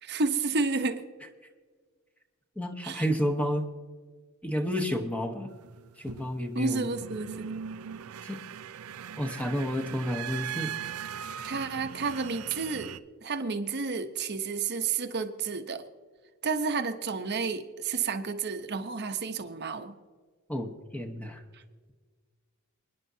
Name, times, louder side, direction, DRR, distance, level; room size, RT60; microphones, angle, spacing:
voice 1, 0.0-1.0 2.8-3.0 6.5-7.4 11.4-15.8 16.4-19.9, right 4 dB, 50° right, 6 dB, 0.9 m, -31 dB
voice 2, 2.6-3.6 4.4-5.5 6.0-6.9 8.2-8.4 9.2-10.7 20.5-21.4, equal, 5° left, 4 dB, 1.0 m, -30 dB
sound 1, 5.5-13.0, right 8 dB, 75° right, 0.5 m, -40 dB
29.5 x 10.5 x 2.8 m, 1.5 s
head